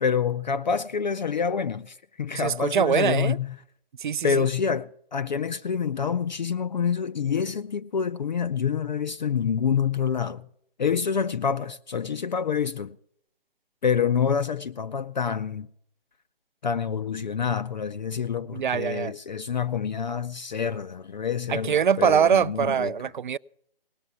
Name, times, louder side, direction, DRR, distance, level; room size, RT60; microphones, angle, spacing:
voice 1, 0.0-3.6 4.2-10.5 10.8-13.0 13.8-15.7 16.6-22.9, left 7 dB, 50° left, 0.5 m, -27 dB
voice 2, 2.3-3.4 4.0-4.4 18.5-19.1 21.5-23.4, right 8 dB, 55° right, 0.5 m, -23 dB
18.5 x 6.8 x 9.5 m
figure-of-eight pair, 145°, 30 cm